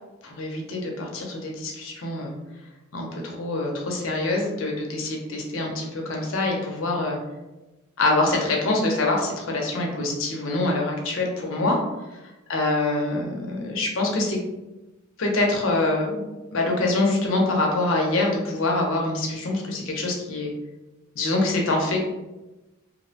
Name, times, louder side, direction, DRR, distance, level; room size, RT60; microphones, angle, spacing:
voice 1, 0.2-2.3 2.9-7.2 8.0-11.8 12.5-14.4 15.2-16.2 16.5-20.5 21.2-22.0, left 2 dB, 70° left, 0 dB, 0.6 m, -25 dB
2.6 x 2.0 x 2.7 m, 1.1 s
head